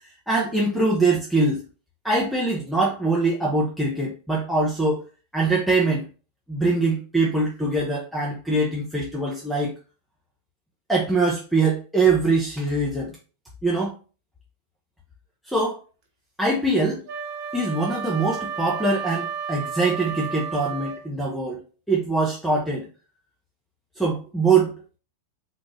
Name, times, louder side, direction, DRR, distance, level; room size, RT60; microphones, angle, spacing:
voice 1, 0.3-1.6 2.0-5.0 5.3-6.1 6.5-9.7 10.9-13.1 13.6-13.9 15.5-15.8 16.4-17.0 17.5-21.6 21.9-22.9 24.0-24.7, right 3 dB, ahead, -5 dB, 0.8 m, -23 dB
Wind instrument woodwind instrument, 17.1-21.1, right 7 dB, 40° right, 0.9 m, -32 dB
3.6 x 2.5 x 3.1 m, 0.35 s
figure-of-eight pair, 90°, 0 cm